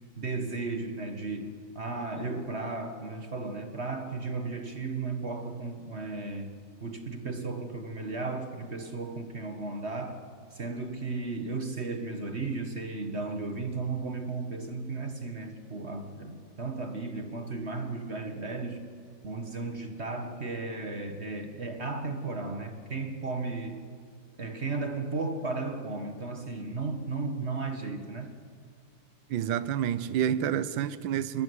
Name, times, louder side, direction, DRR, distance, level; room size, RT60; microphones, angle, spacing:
voice 1, 0.2-6.5 6.8-18.9 19.2-23.8 24.4-28.3, right 3 dB, 35° right, 1.7 m, -35 dB
voice 2, 29.3-31.4, right 10 dB, 65° right, 1.5 m, -28 dB
27.5 x 21.0 x 9.6 m
omnidirectional pair, 2.4 m